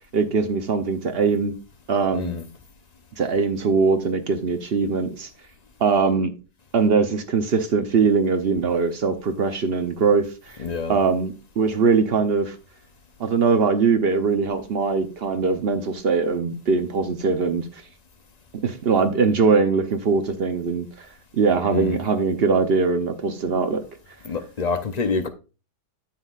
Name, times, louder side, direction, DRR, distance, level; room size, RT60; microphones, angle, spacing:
voice 1, 0.1-1.5 1.9-2.3 3.2-5.3 5.8-6.3 6.7-10.6 10.9-12.6 13.2-17.6 18.6-21.1 21.3-23.8, right 5 dB, 50° right, 0.8 m, -21 dB
voice 2, 2.1-2.5 10.6-11.0 21.7-22.0 24.2-25.3, left 4 dB, 50° left, 0.4 m, -27 dB
9.8 x 7.3 x 2.4 m
omnidirectional pair, 1.7 m